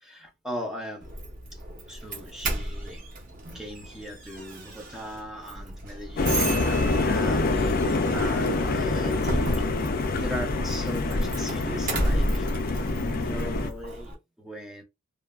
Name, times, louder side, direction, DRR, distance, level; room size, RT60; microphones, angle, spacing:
voice 1, 0.0-1.2 1.5-1.6 1.9-3.1 3.5-9.7 10.2-12.5 13.0-14.8, equal, ahead, 0.6 m, -38 dB
Doorbell, 1.0-14.1, right 1 dB, 35° right, 0.8 m, -33 dB
sound 1, 6.2-13.7, left 3 dB, 40° left, 0.4 m, -26 dB
3.1 x 2.1 x 2.3 m
head